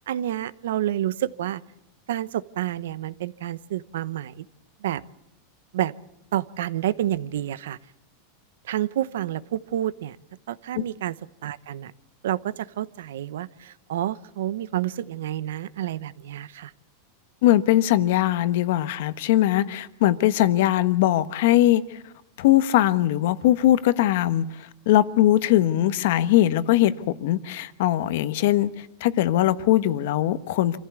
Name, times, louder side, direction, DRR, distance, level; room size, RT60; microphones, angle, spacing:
voice 1, 0.0-1.6 2.1-4.4 4.8-5.0 5.7-5.9 6.3-7.8 8.7-10.2 10.5-11.1 11.4-11.9 12.2-16.7, right 12 dB, 85° right, 0.9 m, -29 dB
voice 2, 17.4-21.8 22.4-24.5 24.9-26.9 27.2-30.8, left 13 dB, 65° left, 1.3 m, -20 dB
27.0 x 15.0 x 8.3 m
supercardioid pair, 155°, 0 cm